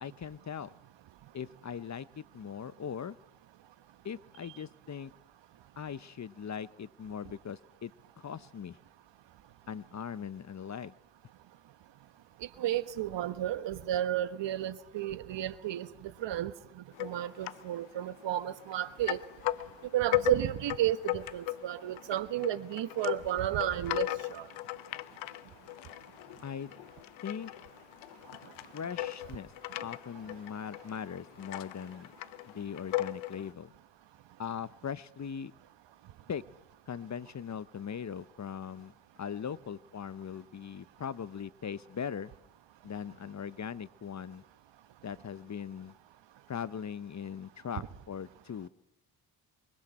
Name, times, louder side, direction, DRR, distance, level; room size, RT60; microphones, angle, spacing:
voice 1, 0.0-0.7 1.3-3.2 4.0-5.1 5.8-8.8 9.7-10.9 26.4-26.7 27.2-27.5 28.7-29.5 29.8-32.1 32.5-33.7 34.4-35.5 36.3-36.4 36.9-38.9 39.2-42.3 42.8-44.4 45.0-45.9 46.5-48.7, left 7 dB, 35° left, 16 dB, 0.9 m, -40 dB
voice 2, 12.6-15.9 16.2-16.5 17.0-19.2 19.9-24.5, right 12 dB, 65° right, 12 dB, 1.4 m, -32 dB
sound 1, 16.9-17.7 18.0-18.8 19.0-33.5, left 15 dB, 75° left, 0.9 m, -37 dB
29.0 x 23.5 x 4.4 m, 0.82 s
hypercardioid pair, 50°, 47 cm